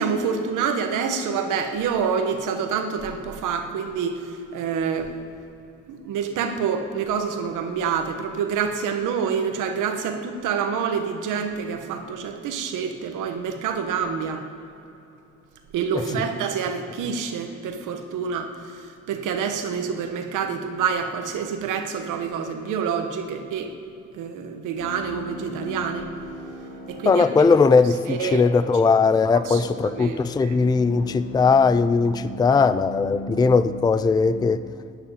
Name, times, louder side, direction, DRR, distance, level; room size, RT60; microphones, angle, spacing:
voice 1, 0.0-4.2 4.5-5.1 5.9-14.4 15.7-18.5 19.1-23.7 24.1-26.1 26.9-27.2 28.1-28.4 29.5-29.6 30.0-30.5, right 6 dB, 90° right, 6 dB, 1.3 m, -27 dB
voice 2, 15.9-16.3 27.1-34.6, left 4 dB, 15° left, 14 dB, 0.4 m, -19 dB
sound 1, 24.8-34.5, left 1 dB, 35° left, 3.4 m, -38 dB
14.0 x 8.1 x 9.9 m, 2.9 s
cardioid pair, 90°, 30 cm